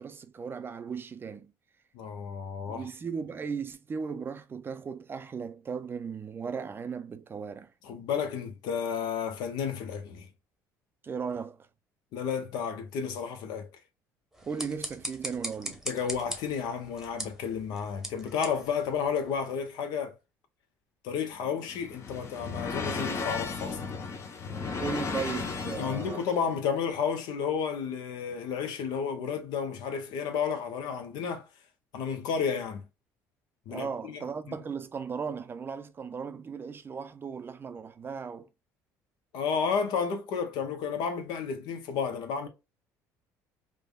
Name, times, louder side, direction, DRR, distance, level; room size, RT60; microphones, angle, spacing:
voice 1, 0.0-1.5 2.7-7.7 11.0-11.7 14.4-15.8 24.8-26.2 33.7-38.5, right 6 dB, 30° right, 0.4 m, -36 dB
voice 2, 1.9-2.9 7.8-10.3 12.1-13.7 15.9-20.1 21.0-23.8 25.8-31.5 31.9-32.9 33.7-34.2 39.3-42.5, left 6 dB, 75° left, 0.7 m, -32 dB
sound 1, 14.3-19.6, right 1 dB, 5° right, 0.9 m, -41 dB
sound 2, 21.3-26.5, left 4 dB, 40° left, 0.7 m, -35 dB
3.3 x 2.2 x 2.2 m
supercardioid pair, 85°, 7 cm